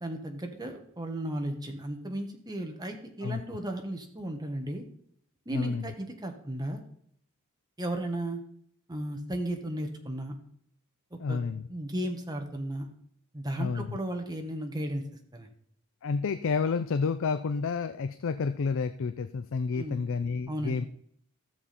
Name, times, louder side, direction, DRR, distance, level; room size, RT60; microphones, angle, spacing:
voice 1, 0.0-4.8 5.4-6.8 7.8-8.4 8.9-10.3 11.3-11.4 11.7-12.9 13.3-15.0 15.3-15.5 19.7-20.0 20.5-20.8, right 1 dB, 20° right, 3 dB, 1.4 m, -35 dB
voice 2, 5.5-5.9 11.2-11.7 13.6-14.0 16.0-20.9, left 5 dB, 60° left, 11 dB, 0.4 m, -30 dB
13.5 x 7.2 x 4.2 m, 0.66 s
head